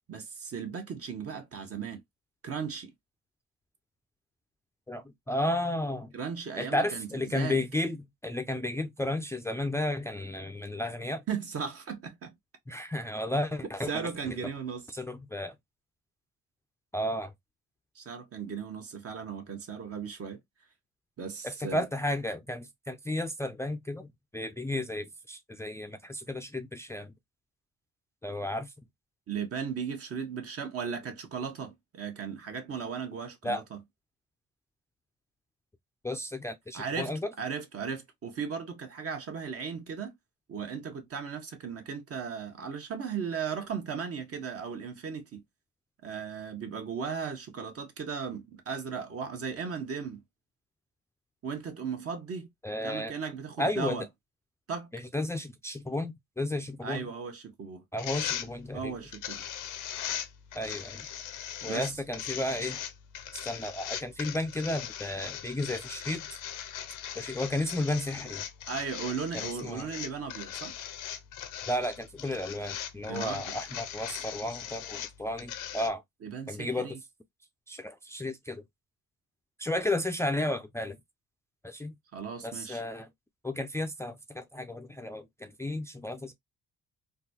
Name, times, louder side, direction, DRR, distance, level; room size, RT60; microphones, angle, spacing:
voice 1, 0.1-2.0 2.4-2.9 6.1-7.6 11.3-12.4 13.9-14.8 17.9-20.4 21.2-21.8 29.3-33.8 36.7-40.1 40.5-45.4 46.0-50.2 51.4-52.5 52.8-54.1 54.7-54.9 56.8-57.8 58.7-59.4 61.7-61.8 68.7-70.7 73.1-73.6 76.2-77.0 82.1-82.8, right 6 dB, 50° right, 1.1 m, -36 dB
voice 2, 4.9-6.2 6.6-11.2 12.7-14.4 14.9-15.5 16.9-17.3 21.4-24.1 24.3-27.1 28.2-28.7 33.4-33.6 36.0-37.3 52.6-53.1 53.6-54.1 54.9-57.1 57.9-58.9 60.5-61.1 61.6-62.8 63.3-66.4 67.2-68.4 69.3-69.9 71.6-76.0 76.5-77.0 77.7-78.6 79.6-81.0 81.6-82.0 82.4-83.1 83.4-86.3, left 1 dB, 10° left, 0.4 m, -33 dB
sound 1, 58.0-75.9, left 10 dB, 90° left, 0.7 m, -40 dB
3.8 x 2.3 x 2.7 m
cardioid pair, 90°, 30 cm